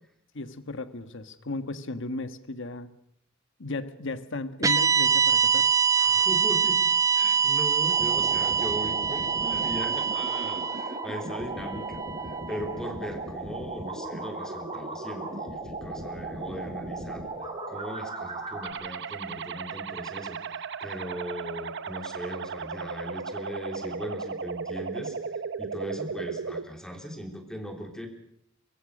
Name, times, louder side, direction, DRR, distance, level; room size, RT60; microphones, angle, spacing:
voice 1, 0.3-2.9 3.6-5.8, left 2 dB, 65° left, 11 dB, 1.4 m, -35 dB
sound 1, 4.6-12.9, right 6 dB, 15° right, 0.8 m, -25 dB
voice 2, 6.0-6.8 7.1-17.3 17.7-25.2 25.6-28.1, equal, 5° left, 4 dB, 3.2 m, -39 dB
sound 2, 7.9-18.7, right 2 dB, 30° right, 5.4 m, -36 dB
sound 3, 18.6-26.6, right 5 dB, 60° right, 0.9 m, -35 dB
24.0 x 22.0 x 6.5 m, 0.75 s
head